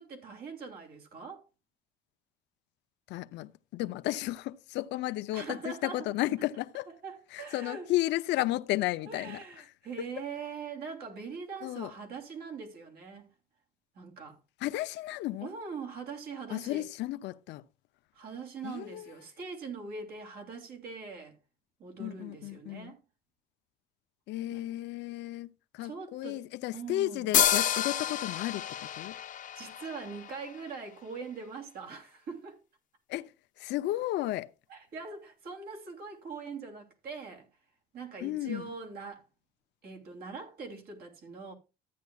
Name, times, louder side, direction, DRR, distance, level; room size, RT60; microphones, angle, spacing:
voice 1, 0.0-1.4 5.3-6.1 7.0-7.9 9.1-13.3 13.9-14.4 15.4-16.9 18.1-21.4 21.8-23.0 24.5-24.6 25.8-26.4 26.7-27.3 29.5-32.6 34.7-37.5 37.9-39.2 39.8-41.5, right 5 dB, 60° right, 3.1 m, -42 dB
voice 2, 3.1-6.9 7.3-9.7 10.0-10.1 11.6-11.9 14.6-15.5 16.5-17.6 18.6-19.1 22.0-22.9 24.3-29.2 33.1-34.5 38.2-38.7, left 16 dB, 75° left, 0.6 m, -33 dB
sound 1, 27.3-30.9, left 10 dB, 45° left, 0.9 m, -30 dB
14.0 x 9.5 x 2.3 m
cardioid pair, 135°, 18 cm